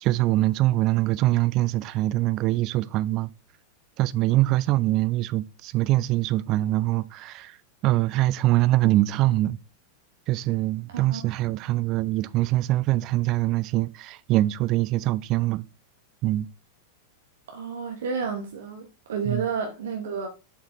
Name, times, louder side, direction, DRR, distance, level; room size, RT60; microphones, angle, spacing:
voice 1, 0.0-3.3 4.0-7.6 7.8-9.6 10.3-15.7 16.2-16.5 19.3-19.5, right 16 dB, 40° right, 0.3 m, -23 dB
voice 2, 10.9-11.2 17.5-20.3, right 5 dB, 60° right, 1.0 m, -31 dB
7.0 x 4.8 x 3.1 m
figure-of-eight pair, 90°, 0 cm